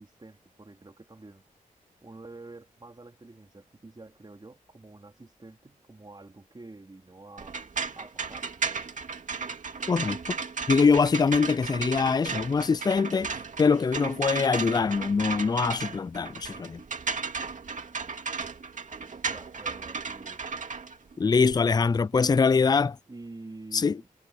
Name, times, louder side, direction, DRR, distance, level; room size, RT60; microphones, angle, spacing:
voice 1, 0.0-1.4 2.0-7.6 7.9-8.6 19.2-20.5 22.1-22.4 23.1-24.1, right 2 dB, 30° right, 3.8 m, -47 dB
sound 1, 7.4-21.6, right 5 dB, 60° right, 2.3 m, -35 dB
voice 2, 9.9-10.4 10.7-16.8 21.2-23.0 23.7-24.0, left 5 dB, 30° left, 0.4 m, -23 dB
cardioid pair, 65°, 15 cm